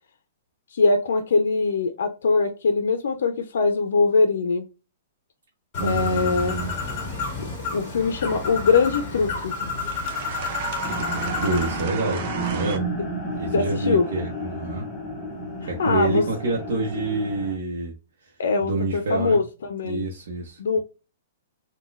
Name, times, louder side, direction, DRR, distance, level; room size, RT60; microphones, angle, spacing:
voice 1, 0.7-4.7 5.8-6.5 7.7-9.5 13.5-14.0 15.6-16.2 18.4-20.1 20.6-20.8, left 4 dB, 75° left, 0.5 m, -22 dB
Bird, 5.7-11.8, left 4 dB, 30° left, 1.6 m, -30 dB
voice 2, 5.8-6.7 11.4-12.8 13.4-14.9 15.7-17.9 18.6-19.4 19.8-20.8, right 3 dB, 70° right, 0.8 m, -27 dB
sound 1, 6.0-12.8, right 5 dB, 35° right, 0.5 m, -36 dB
sound 2, 10.8-17.6, right 1 dB, 5° left, 0.7 m, -32 dB
3.8 x 2.2 x 2.4 m
hypercardioid pair, 170°, 0 cm